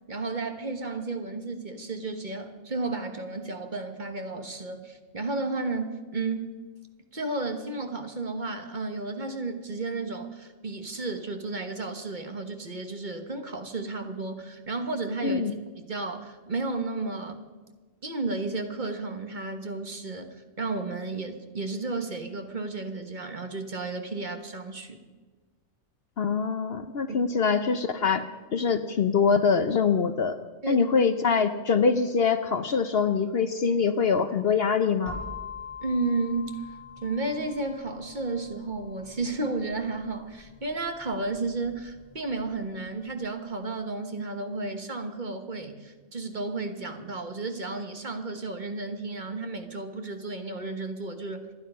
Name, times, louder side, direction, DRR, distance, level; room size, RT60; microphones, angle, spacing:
voice 1, 0.1-6.5 7.1-15.4 15.9-17.4 18.0-25.0 30.6-30.9 35.8-51.5, right 3 dB, 35° right, 6 dB, 1.4 m, -33 dB
voice 2, 15.2-15.5 26.2-30.4 30.7-35.2, left 5 dB, 55° left, 11 dB, 0.9 m, -24 dB
sound 1, 35.1-42.9, left 4 dB, 10° left, 4.6 m, -44 dB
26.5 x 9.6 x 5.5 m, 1.3 s
omnidirectional pair, 1.4 m